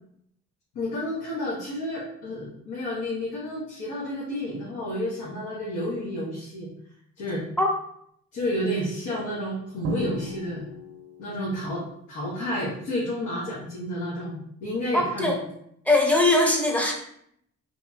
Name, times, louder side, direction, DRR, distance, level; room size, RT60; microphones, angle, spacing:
voice 1, 0.7-6.7 7.2-7.4 8.3-10.7 11.2-11.8 12.1-15.3, left 1 dB, 80° left, -7 dB, 1.0 m, -30 dB
Drum, 9.8-11.5, right 2 dB, 55° right, 0.5 m, -34 dB
voice 2, 14.9-15.4 15.9-16.9, left 2 dB, 5° left, 0 dB, 0.6 m, -21 dB
3.0 x 2.8 x 2.3 m, 0.71 s
cardioid pair, 90°, 30 cm